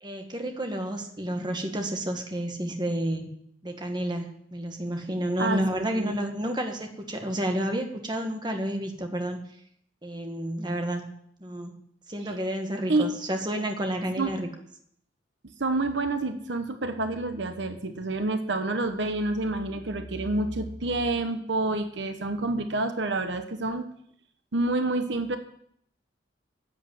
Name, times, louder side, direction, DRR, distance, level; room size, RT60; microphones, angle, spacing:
voice 1, 0.0-3.3 3.6-9.4 10.0-11.1 11.4-11.8 12.1-14.5, right 1 dB, 25° right, 4 dB, 1.5 m, -30 dB
voice 2, 5.4-6.1 12.3-12.4 12.9-13.1 14.2-14.3 15.6-23.9 24.5-25.4, right 2 dB, 70° right, 7 dB, 1.1 m, -28 dB
11.0 x 8.3 x 7.6 m, 0.69 s
head